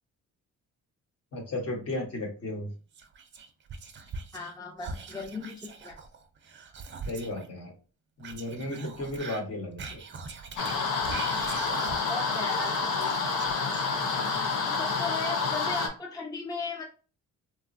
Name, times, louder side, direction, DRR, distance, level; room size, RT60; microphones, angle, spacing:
voice 1, 1.3-2.7 7.1-7.7 8.2-10.0, left 1 dB, 55° left, 1 dB, 1.1 m, -34 dB
Whispering, 2.9-4.5 4.8-7.5 8.2-12.2 12.5-14.3, right 4 dB, 40° right, 0.5 m, -42 dB
voice 2, 4.3-6.0 12.1-13.2 14.6-16.9, left 3 dB, 10° left, 1 dB, 0.5 m, -37 dB
sound 1, 10.6-15.9, left 4 dB, 85° left, 0.7 m, -28 dB
3.0 x 2.2 x 2.5 m, 0.35 s
cardioid pair, 90°, 30 cm